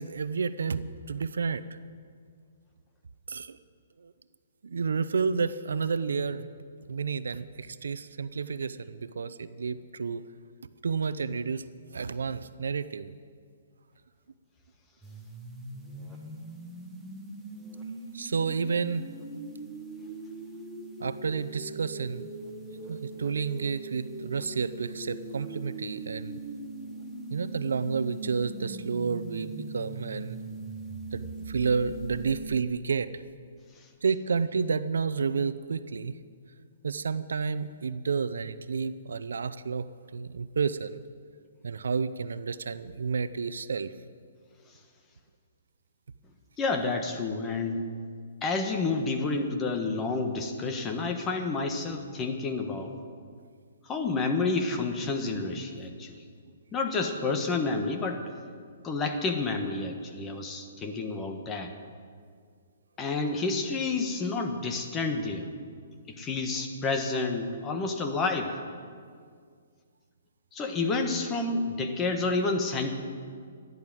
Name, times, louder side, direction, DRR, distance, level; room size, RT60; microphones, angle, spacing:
voice 1, 0.0-1.6 3.3-3.6 4.0-4.1 4.6-6.5 6.9-10.2 10.8-11.7 11.9-13.1 18.1-19.1 21.0-22.3 22.9-26.4 27.3-30.4 31.1-33.2 34.0-36.1 36.8-39.9 40.1-41.0 41.6-43.9, right 5 dB, 90° right, 14 dB, 0.7 m, -30 dB
sound 1, 15.0-32.6, right 2 dB, ahead, 1.3 m, -41 dB
voice 2, 46.6-47.8 48.4-53.0 53.9-56.2 56.7-58.2 58.8-61.7 63.0-65.5 66.1-68.6 70.5-72.9, left 3 dB, 15° left, 5 dB, 1.2 m, -29 dB
14.5 x 11.0 x 7.7 m, 2.1 s
hypercardioid pair, 160°, 0 cm